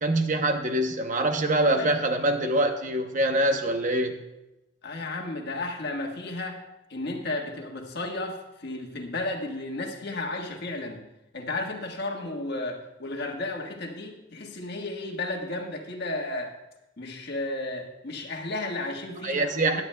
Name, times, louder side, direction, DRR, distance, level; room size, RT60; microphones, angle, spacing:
voice 1, 0.0-4.1 19.2-19.8, right 1 dB, 40° right, 6 dB, 0.8 m, -24 dB
voice 2, 4.8-6.6 6.9-11.0 11.3-16.5 17.0-19.8, left 2 dB, 55° left, 2 dB, 1.4 m, -33 dB
16.5 x 10.5 x 2.2 m, 0.93 s
head